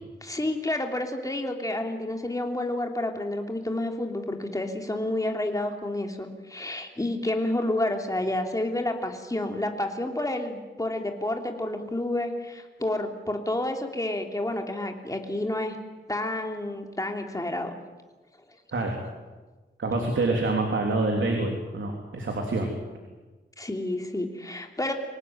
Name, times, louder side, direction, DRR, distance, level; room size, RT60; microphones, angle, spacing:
voice 1, 0.2-15.8 16.1-17.7 23.6-24.9, left 1 dB, 15° left, 3 dB, 3.0 m, -29 dB
voice 2, 19.8-22.7, right 2 dB, 85° right, 2 dB, 3.4 m, -26 dB
25.5 x 18.5 x 9.2 m, 1.3 s
wide cardioid pair, 85°, 20 cm